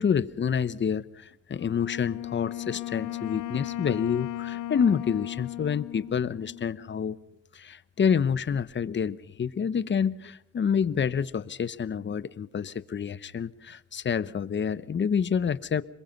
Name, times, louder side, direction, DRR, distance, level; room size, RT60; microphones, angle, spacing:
voice 1, 0.0-7.2 7.5-15.8, left 7 dB, 40° left, 1.0 m, -28 dB
Wind instrument woodwind instrument, 1.5-7.0, left 15 dB, 85° left, 1.3 m, -36 dB
26.5 x 22.0 x 5.4 m
cardioid pair, 90°, 30 cm